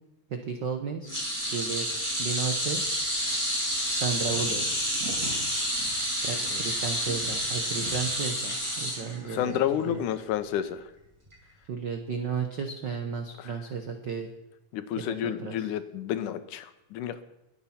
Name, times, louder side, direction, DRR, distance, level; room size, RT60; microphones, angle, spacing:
voice 1, 0.3-1.1 1.5-1.9 2.2-2.8 3.9-4.6 6.2-10.0 11.7-14.3 15.0-15.6, right 6 dB, 75° right, 6 dB, 1.0 m, -33 dB
sound 1, 1.1-9.5 9.9-10.1 11.3-11.4, equal, 10° right, 5.9 m, -29 dB
sound 2, 2.4-8.3, right 2 dB, 55° right, 4.9 m, -46 dB
voice 2, 9.2-10.8 13.4-13.6 14.7-17.2, left 10 dB, 80° left, 12 dB, 2.4 m, -30 dB
21.5 x 8.6 x 5.8 m, 0.91 s
omnidirectional pair, 3.6 m